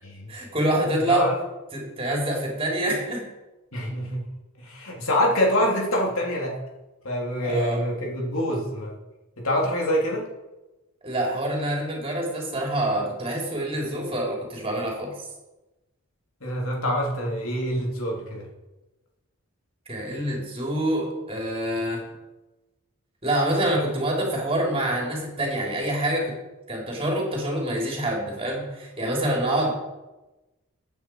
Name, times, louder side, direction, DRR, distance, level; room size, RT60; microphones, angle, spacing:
voice 1, 0.3-1.3 1.7-3.2 7.4-7.8 11.0-15.1 19.9-22.1 23.2-26.3 26.7-29.7, right 1 dB, 25° right, -2 dB, 3.6 m, -26 dB
voice 2, 3.7-4.2 4.6-6.5 7.0-8.9 9.4-10.2 16.4-18.4, equal, 70° left, -2 dB, 3.2 m, -25 dB
15.0 x 9.0 x 4.7 m, 1.1 s
head